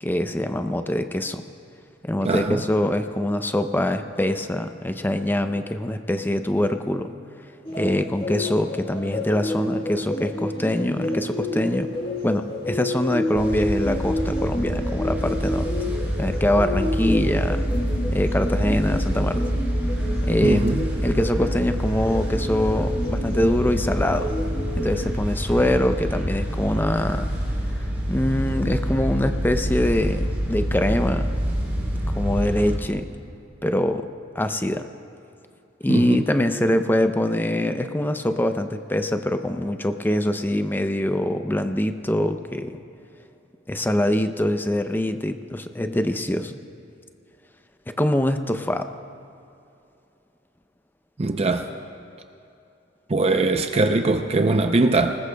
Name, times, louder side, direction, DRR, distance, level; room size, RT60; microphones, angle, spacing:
voice 1, 0.0-1.4 2.0-7.1 7.8-11.9 12.2-15.7 16.2-17.6 18.1-19.5 20.2-20.8 21.0-24.3 24.8-27.3 27.8-31.4 32.1-33.1 33.6-34.1 34.4-34.9 35.8-42.8 43.7-46.6 48.0-48.9, left 1 dB, 10° left, 8 dB, 0.5 m, -24 dB
voice 2, 2.2-2.6 20.4-20.8 35.9-36.2 51.2-51.7 53.1-55.2, right 2 dB, 35° right, 6 dB, 0.5 m, -21 dB
sound 1, 7.6-25.1, left 1 dB, 30° left, 1.4 m, -30 dB
sound 2, 13.3-32.8, equal, 10° right, 3.4 m, -26 dB
25.5 x 20.0 x 2.3 m, 2.7 s
head